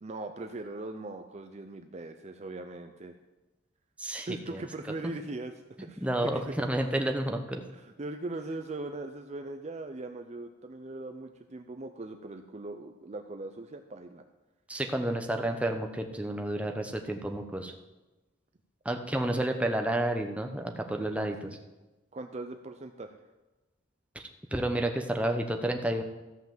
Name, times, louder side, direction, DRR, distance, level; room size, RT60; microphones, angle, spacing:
voice 1, 0.0-3.2 4.3-5.5 5.8-6.4 7.7-14.2 21.0-21.6 22.1-23.2, right 2 dB, 35° right, 7 dB, 0.5 m, -40 dB
voice 2, 4.0-4.6 6.0-7.6 14.7-17.7 18.8-21.4 24.1-24.2 24.5-26.0, right 1 dB, 5° right, 4 dB, 0.9 m, -30 dB
14.0 x 5.9 x 7.3 m, 1.1 s
head